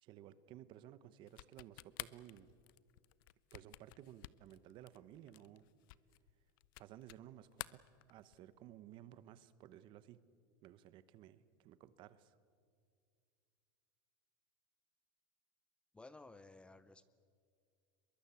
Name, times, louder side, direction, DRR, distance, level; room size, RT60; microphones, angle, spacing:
voice 1, 0.0-2.5 3.5-5.7 6.8-7.8 8.1-10.2 10.6-12.4, right 12 dB, 45° right, 15 dB, 1.1 m, -56 dB
sound 1, 1.3-7.3 7.5-8.5, left 20 dB, 70° left, 0.6 m, -51 dB
voice 2, 15.9-17.0, left 2 dB, 10° left, 15 dB, 0.7 m, -56 dB
23.0 x 22.5 x 8.4 m, 2.2 s
supercardioid pair, 140°, 12 cm